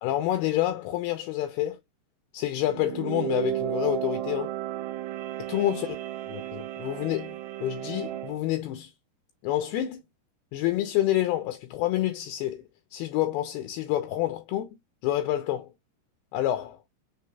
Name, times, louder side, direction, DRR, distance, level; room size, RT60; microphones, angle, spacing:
voice 1, 0.0-1.8 2.3-4.5 5.4-5.9 6.5-7.4 7.6-8.9 9.4-10.0 10.5-12.6 12.9-14.7 15.0-15.7 16.3-16.8, left 13 dB, 80° left, 2.4 m, -28 dB
sound 1, 2.6-8.4, right 14 dB, 85° right, 2.8 m, -33 dB
6.7 x 3.5 x 2.2 m
omnidirectional pair, 4.8 m